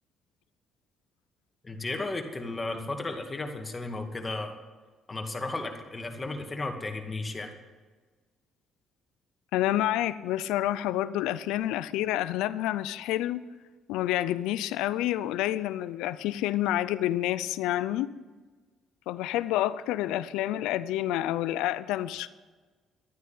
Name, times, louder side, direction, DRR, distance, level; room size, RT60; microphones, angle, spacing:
voice 1, 1.6-4.6 5.1-7.5, left 2 dB, 25° left, 4 dB, 2.2 m, -34 dB
voice 2, 9.5-13.4 13.9-18.1 19.1-22.3, left 13 dB, 85° left, 15 dB, 0.5 m, -28 dB
12.5 x 9.4 x 9.2 m, 1.3 s
supercardioid pair, 75°, 0 cm